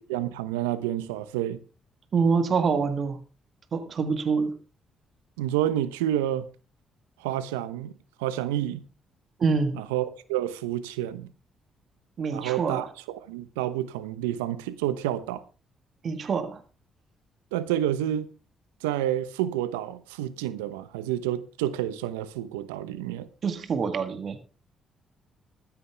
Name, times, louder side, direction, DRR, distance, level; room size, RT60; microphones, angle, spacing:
voice 1, 0.1-1.6 5.4-6.5 7.2-7.9 8.2-8.8 9.7-11.3 12.3-15.4 17.5-18.3 18.8-23.3, right 12 dB, 90° right, 0.9 m, -29 dB
voice 2, 2.1-3.2 3.7-4.6 9.4-9.8 12.2-12.9 16.0-16.6 23.4-24.4, right 5 dB, 55° right, 1.7 m, -26 dB
14.5 x 13.5 x 3.5 m
hypercardioid pair, 50°, 0 cm